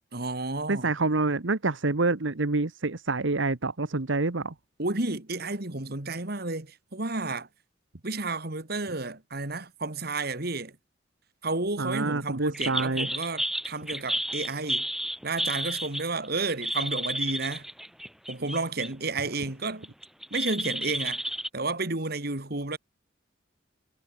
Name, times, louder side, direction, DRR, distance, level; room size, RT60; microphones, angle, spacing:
voice 1, 0.1-0.9 4.8-7.5 8.0-10.8 11.4-14.9 15.2-17.7 18.3-19.9 20.3-21.2 21.5-22.8, right 3 dB, 55° right, 2.5 m, -31 dB
voice 2, 0.7-4.5 11.8-13.1, right 3 dB, 85° right, 1.3 m, -27 dB
sound 1, 12.5-18.9 19.3-21.5, equal, ahead, 3.9 m, -31 dB
head